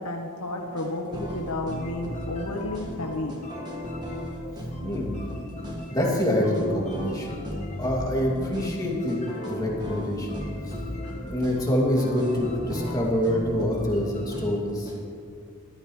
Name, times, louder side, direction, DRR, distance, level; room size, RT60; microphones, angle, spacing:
voice 1, 0.0-3.4 11.0-11.1, left 1 dB, 90° left, 2 dB, 1.2 m, -32 dB
sound 1, 0.8-14.6, left 3 dB, 30° left, 1.7 m, -42 dB
sound 2, 0.8-15.0, equal, 20° right, 1.7 m, -36 dB
voice 2, 4.8-5.2 5.9-7.4 7.8-10.4 11.2-14.9, left 1 dB, 15° left, -3 dB, 2.5 m, -26 dB
19.5 x 13.0 x 3.2 m, 2.6 s
head